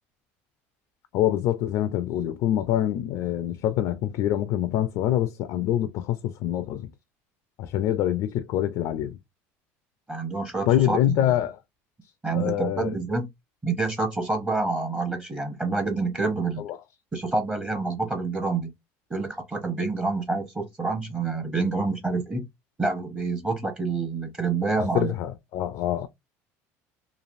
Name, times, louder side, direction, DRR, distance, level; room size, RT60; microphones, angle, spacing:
voice 1, 1.1-6.9 7.6-9.2 10.7-11.6 12.3-13.0 16.6-16.8 24.9-26.1, left 12 dB, 65° left, 0.4 m, -25 dB
voice 2, 10.1-11.3 12.2-13.3 13.6-16.7 17.1-18.7 19.1-22.5 22.8-25.1, right 3 dB, 15° right, 0.7 m, -27 dB
3.1 x 2.4 x 2.5 m
cardioid pair, 125°, 7 cm